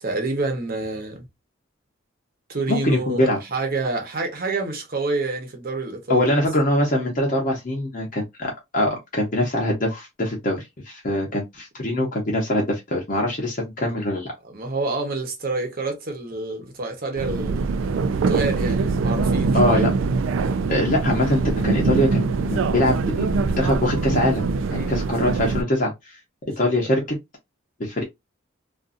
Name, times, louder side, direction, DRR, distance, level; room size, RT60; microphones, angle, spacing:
voice 1, 0.0-1.3 2.5-6.3 14.4-17.7 18.3-19.9 24.7-25.0 26.8-26.9, right 2 dB, 50° right, 0.9 m, -28 dB
voice 2, 2.7-3.4 6.1-14.3 19.5-19.9 20.7-23.3 23.6-24.4 24.7-26.2 26.6-27.2 27.8-28.0, left 1 dB, 45° left, 0.7 m, -23 dB
sound 1, 17.2-25.6, right 4 dB, 85° right, 0.3 m, -23 dB
2.5 x 2.5 x 2.5 m
head